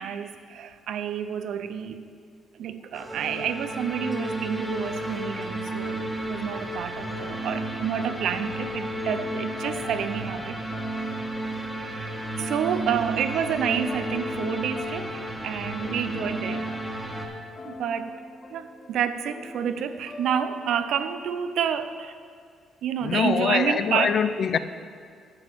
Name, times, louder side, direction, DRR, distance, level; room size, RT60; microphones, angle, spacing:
voice 1, 0.0-2.0 2.5-6.0 6.3-10.6 11.8-16.7 17.6-18.1 18.5-22.1 22.8-24.2, right 8 dB, 75° right, 0.6 m, -29 dB
sound 1, 2.9-17.3, right 1 dB, 5° right, 1.5 m, -32 dB
sound 2, 7.3-21.0, left 2 dB, 40° left, 1.0 m, -43 dB
voice 2, 23.0-24.6, left 7 dB, 60° left, 0.5 m, -24 dB
9.9 x 5.9 x 7.6 m
cardioid pair, 90°, 0 cm